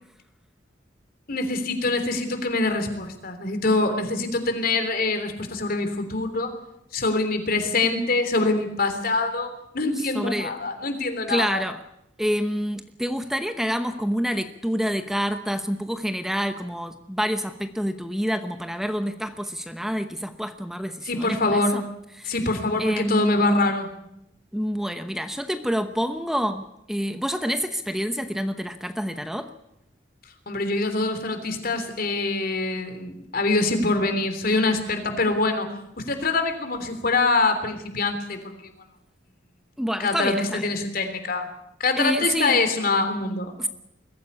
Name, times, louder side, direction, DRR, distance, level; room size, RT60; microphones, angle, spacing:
voice 1, 1.3-6.5 6.9-11.6 21.0-21.8 22.2-23.9 30.5-38.5 40.0-41.5 41.8-43.5, left 3 dB, 55° left, 7 dB, 3.4 m, -24 dB
voice 2, 10.0-10.5 11.3-11.8 12.2-21.8 22.2-22.3 22.8-23.7 24.5-29.5 39.8-40.7 42.0-42.6 43.6-43.7, equal, ahead, 8 dB, 0.9 m, -27 dB
22.0 x 14.5 x 9.7 m, 0.83 s
head